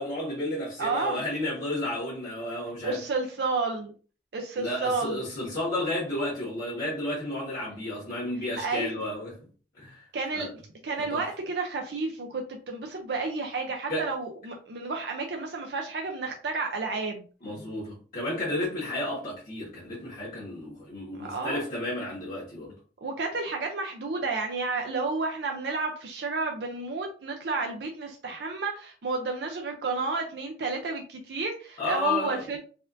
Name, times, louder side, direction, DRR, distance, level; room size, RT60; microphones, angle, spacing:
voice 1, 0.0-3.0 4.6-9.4 9.8-10.1 10.3-10.5 11.0-11.2 13.9-14.0 17.4-22.7 31.8-32.4, left 1 dB, 50° left, 1.4 m, -32 dB
voice 2, 0.8-1.2 2.8-3.9 4.3-5.2 8.6-8.9 10.1-10.5 10.8-17.2 21.2-21.6 23.0-32.6, right 3 dB, 65° right, 0.5 m, -31 dB
4.1 x 2.5 x 2.6 m
head